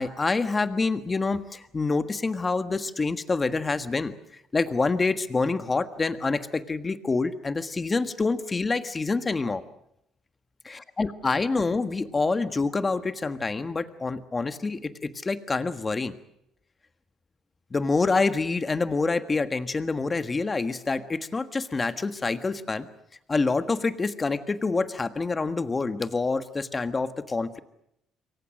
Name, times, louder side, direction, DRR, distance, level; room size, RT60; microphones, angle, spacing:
voice 1, 0.0-4.1 4.5-9.6 10.6-16.2 17.7-22.9 23.3-27.6, left 3 dB, 25° left, 10 dB, 1.6 m, -27 dB
27.5 x 23.0 x 6.5 m, 0.77 s
cardioid pair, 115°, 0 cm